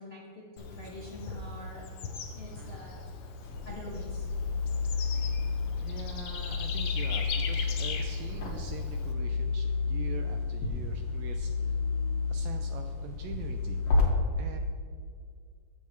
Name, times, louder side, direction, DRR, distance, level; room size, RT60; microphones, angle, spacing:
voice 1, 0.0-1.8 2.3-3.0 3.6-4.1, left 1 dB, 90° left, -5 dB, 0.5 m, -45 dB
Bird / Insect, 0.6-9.1, left 5 dB, 75° left, 1.2 m, -40 dB
sound 1, 3.4-14.0, left 4 dB, 55° left, 2.4 m, -31 dB
voice 2, 5.8-11.8 12.3-13.8 14.4-14.6, right 8 dB, 80° right, 6 dB, 1.5 m, -44 dB
15.0 x 7.3 x 3.2 m, 2.1 s
omnidirectional pair, 3.5 m